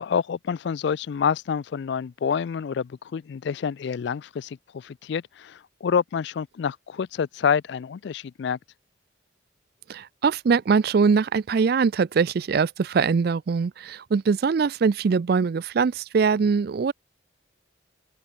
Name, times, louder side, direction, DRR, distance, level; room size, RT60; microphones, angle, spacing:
voice 1, 0.0-8.6, left 7 dB, 60° left, 0.3 m, -27 dB
voice 2, 9.9-16.9, right 5 dB, 50° right, 0.3 m, -22 dB
head